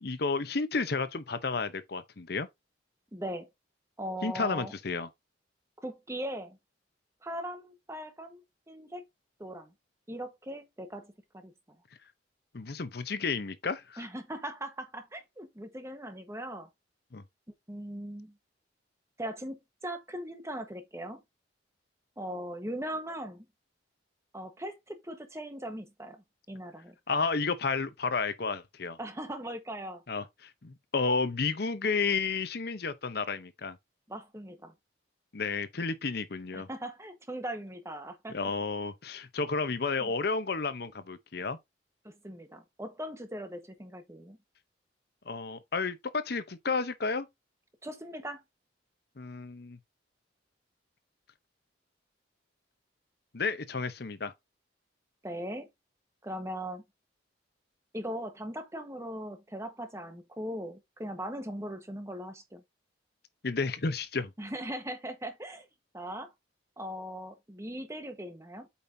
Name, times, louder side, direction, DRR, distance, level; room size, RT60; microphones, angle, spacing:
voice 1, 0.0-2.5 4.2-5.1 12.5-14.1 17.1-17.2 27.1-29.0 30.1-33.8 35.3-36.7 38.3-41.6 45.3-47.3 49.2-49.8 53.3-54.3 63.4-64.3, left 4 dB, 55° left, 0.8 m, -32 dB
voice 2, 3.1-3.5 4.0-4.7 5.8-6.6 7.2-9.0 9.4-9.7 10.1-11.5 14.0-16.7 17.7-18.3 19.2-21.2 22.2-23.5 24.3-27.0 29.0-30.0 34.1-34.7 36.5-38.4 40.0-40.1 42.0-44.4 47.8-48.4 55.2-55.7 56.2-56.8 57.9-62.6 64.4-65.7 65.9-66.3 66.8-68.7, equal, 15° right, 1.2 m, -39 dB
8.3 x 5.3 x 2.7 m
head